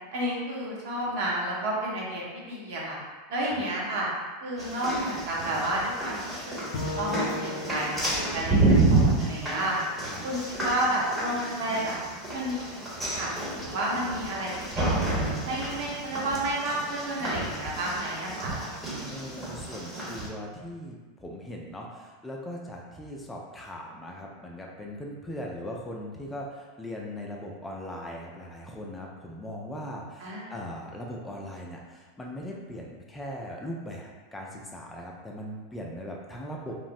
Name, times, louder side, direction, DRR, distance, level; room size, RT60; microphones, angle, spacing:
voice 1, 0.1-3.0 3.3-4.1 4.4-9.8 10.2-12.0 12.3-12.8 13.1-15.1 15.4-18.6 30.2-30.6, right 1 dB, 70° right, -4 dB, 0.8 m, -31 dB
sound 1, 4.6-20.3, right 2 dB, 10° right, 1.0 m, -30 dB
Bowed string instrument, 6.7-10.0, left 3 dB, 80° left, 0.4 m, -38 dB
voice 2, 19.1-36.8, equal, 10° left, -1 dB, 0.4 m, -39 dB
3.0 x 2.0 x 2.6 m, 1.3 s
hypercardioid pair, 105°, 0 cm